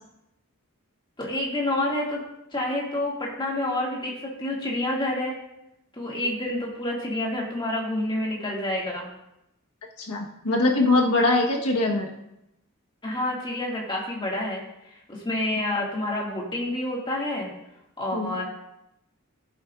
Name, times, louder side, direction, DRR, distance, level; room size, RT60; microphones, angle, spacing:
voice 1, 1.2-2.2 2.5-5.3 5.9-9.1 13.0-17.5 18.0-18.4, left 1 dB, 20° left, -3 dB, 2.2 m, -28 dB
voice 2, 10.0-12.1 18.1-18.4, left 2 dB, 85° left, 0 dB, 1.4 m, -22 dB
16.0 x 7.7 x 2.5 m, 0.87 s
head